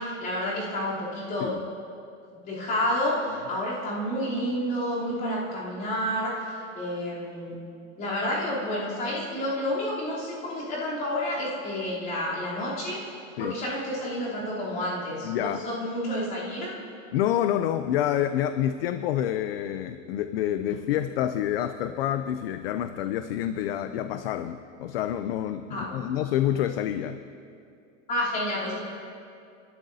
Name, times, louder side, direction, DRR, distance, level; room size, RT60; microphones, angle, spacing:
voice 1, 0.0-1.5 2.4-7.6 8.0-13.0 13.4-16.8 25.7-26.0 28.1-28.8, left 1 dB, 25° left, -7 dB, 3.3 m, -30 dB
voice 2, 15.2-15.6 17.1-27.2, left 11 dB, 50° left, 10 dB, 0.5 m, -28 dB
30.0 x 12.0 x 2.7 m, 2.5 s
supercardioid pair, 180°, 39 cm